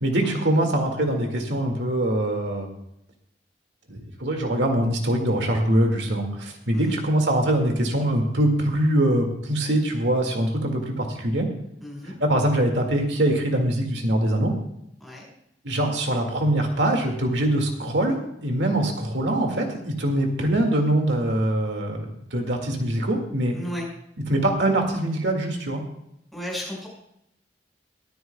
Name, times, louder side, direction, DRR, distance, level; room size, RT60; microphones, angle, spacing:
voice 1, 0.0-2.7 3.9-11.5 12.2-14.5 15.6-23.6 24.3-25.8, right 1 dB, 80° right, 3 dB, 2.1 m, -23 dB
voice 2, 11.8-12.2 15.0-15.3 23.5-23.9 26.3-26.9, equal, ahead, -4 dB, 5.1 m, -34 dB
23.0 x 9.4 x 2.3 m, 0.78 s
head